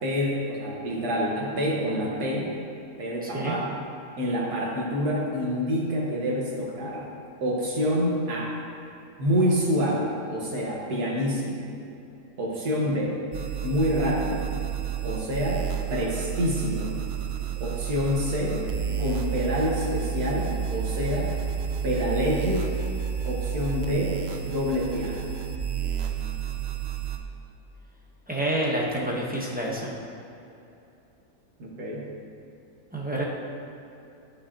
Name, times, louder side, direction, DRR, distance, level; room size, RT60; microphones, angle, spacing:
voice 1, 0.0-2.5 3.0-3.7 4.2-7.1 7.4-8.6 9.2-11.7 12.4-13.2 13.6-14.5 15.0-17.0 17.6-18.6 19.0-21.3 21.8-22.7 23.2-25.2 31.6-32.0, equal, 80° right, -3 dB, 1.9 m, -27 dB
voice 2, 3.2-3.5 28.3-29.9 32.9-33.2, right 1 dB, 5° right, -4 dB, 0.8 m, -28 dB
sound 1, 13.3-27.2, right 8 dB, 60° right, 0.7 m, -30 dB
13.5 x 5.3 x 2.9 m, 2.8 s
omnidirectional pair, 1.6 m